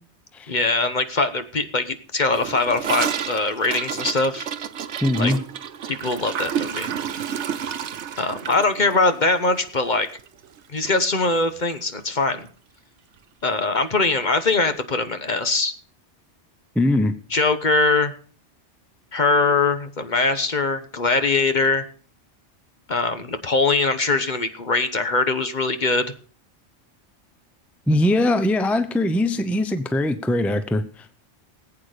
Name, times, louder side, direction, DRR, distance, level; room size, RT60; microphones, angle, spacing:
voice 1, 0.5-4.5 5.2-5.3 5.9-6.9 8.2-10.1 10.7-12.5 13.4-15.7 17.3-18.1 19.1-21.9 22.9-26.1, left 3 dB, 40° left, 9 dB, 1.2 m, -22 dB
Gurgling / Toilet flush, 2.3-10.6 10.8-11.0 11.3-11.7 12.0-12.1 12.4-12.5 13.4-13.5, right 8 dB, 75° right, 1.1 m, -30 dB
voice 2, 5.0-5.4 16.8-17.1 27.9-31.1, left 1 dB, ahead, 10 dB, 0.7 m, -21 dB
19.0 x 8.5 x 5.0 m, 0.41 s
omnidirectional pair, 1.2 m